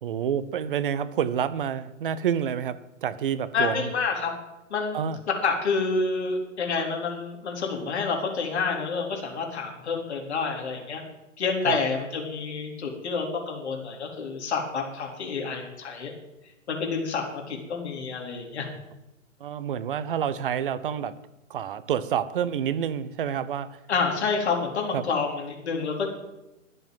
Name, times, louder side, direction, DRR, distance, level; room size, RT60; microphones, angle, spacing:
voice 1, 0.0-3.9 4.9-5.2 11.6-11.8 19.4-21.1 21.5-23.7 24.9-25.1, right 8 dB, 40° right, 16 dB, 1.0 m, -28 dB
voice 2, 3.5-4.3 4.7-5.1 5.4-11.0 11.4-16.1 16.7-18.7 23.9-26.1, left 4 dB, 55° left, 1 dB, 4.0 m, -28 dB
21.5 x 7.9 x 7.9 m, 0.97 s
figure-of-eight pair, 125°, 40 cm